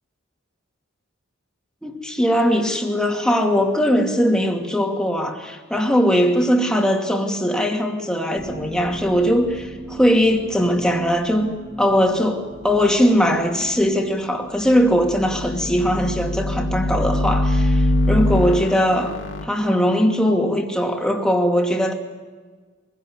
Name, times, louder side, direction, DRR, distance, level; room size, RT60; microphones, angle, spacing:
voice 1, 1.8-19.1 19.4-21.9, equal, 5° left, 2 dB, 2.5 m, -20 dB
sound 1, 8.3-15.0, right 1 dB, 50° right, 3.8 m, -39 dB
sound 2, 14.7-19.5, left 1 dB, 60° left, 2.2 m, -22 dB
24.0 x 16.5 x 9.8 m, 1.4 s
head